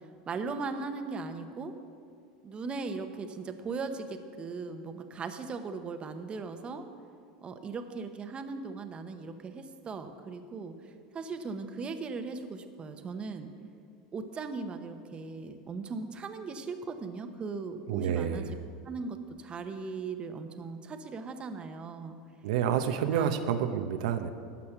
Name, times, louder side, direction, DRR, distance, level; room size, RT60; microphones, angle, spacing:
voice 1, 0.3-1.7 2.4-6.8 7.4-13.5 14.1-18.5 18.8-22.2 23.1-23.4, right 4 dB, 25° right, 7 dB, 1.0 m, -38 dB
voice 2, 17.9-18.5 22.4-24.3, right 8 dB, 75° right, 7 dB, 0.8 m, -29 dB
13.0 x 8.4 x 6.0 m, 2.3 s
supercardioid pair, 110°, 4 cm